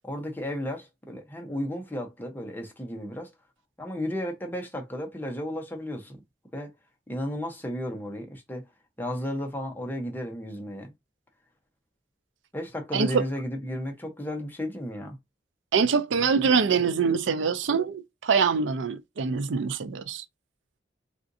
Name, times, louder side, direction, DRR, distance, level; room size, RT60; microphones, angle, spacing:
voice 1, 0.0-3.3 3.8-6.2 6.5-6.7 7.1-8.6 9.0-10.9 12.5-15.2, left 1 dB, 10° left, 0.8 m, -33 dB
voice 2, 12.9-13.2 15.7-20.2, right 5 dB, 85° right, 0.5 m, -24 dB
3.7 x 2.5 x 2.6 m
head